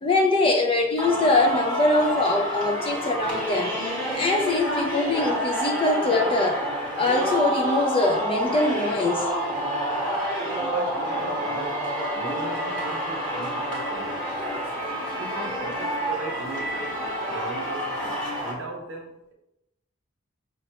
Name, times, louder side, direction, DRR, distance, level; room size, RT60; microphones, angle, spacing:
voice 1, 0.0-3.7 4.1-6.6 6.9-9.2, left 2 dB, 25° left, 0.4 m, -23 dB
Singing, 1.0-18.5, equal, 5° left, 1.0 m, -28 dB
voice 2, 10.6-11.9 12.1-14.3 15.1-19.3, right 3 dB, 65° right, 0.8 m, -37 dB
5.2 x 2.2 x 2.8 m
head